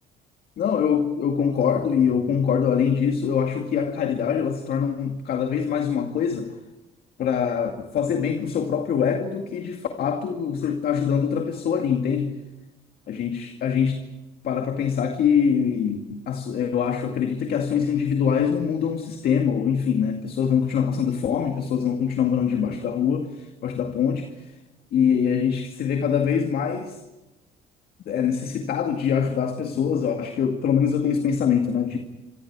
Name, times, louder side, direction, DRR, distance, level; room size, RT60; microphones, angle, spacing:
voice 1, 0.6-6.6 7.2-12.4 13.1-14.1 14.4-24.5 24.9-27.0 28.1-32.0, left 7 dB, 65° left, 2.2 m, -24 dB
30.0 x 26.5 x 4.8 m
cardioid pair, 110°, 17 cm